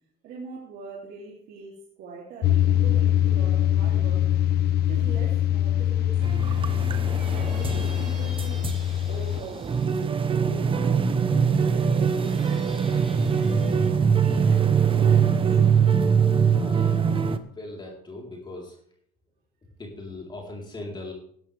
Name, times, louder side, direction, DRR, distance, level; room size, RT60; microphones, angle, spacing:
voice 1, 0.2-4.3 4.9-6.7 7.3-8.7 9.1-9.8 10.4-13.0 13.4-15.4, right 4 dB, 75° right, -4 dB, 3.1 m, -42 dB
sound 1, 2.4-9.4, left 11 dB, 70° left, 0.7 m, -23 dB
sound 2, 6.2-17.4, right 6 dB, 30° right, 1.0 m, -23 dB
Squeak, 7.0-10.0 10.9-13.9, equal, ahead, 3.9 m, -49 dB
voice 2, 16.5-17.0 17.6-18.8 19.8-21.1, left 2 dB, 25° left, -2 dB, 4.0 m, -39 dB
15.5 x 12.5 x 3.5 m, 0.64 s
cardioid pair, 110°, 17 cm